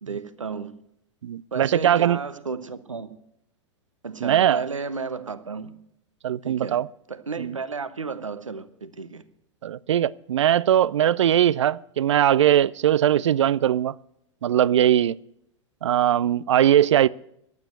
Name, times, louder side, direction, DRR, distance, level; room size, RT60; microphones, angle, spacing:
voice 1, 0.0-0.8 1.5-3.2 4.0-5.8 6.4-6.8 7.1-9.2, right 4 dB, 80° right, 1.0 m, -33 dB
voice 2, 1.2-2.2 4.2-4.6 6.2-6.9 7.4-7.5 9.6-13.9 14.4-15.2 15.8-17.1, right 11 dB, 65° right, 0.5 m, -20 dB
12.0 x 8.8 x 8.0 m
figure-of-eight pair, 95°, 16 cm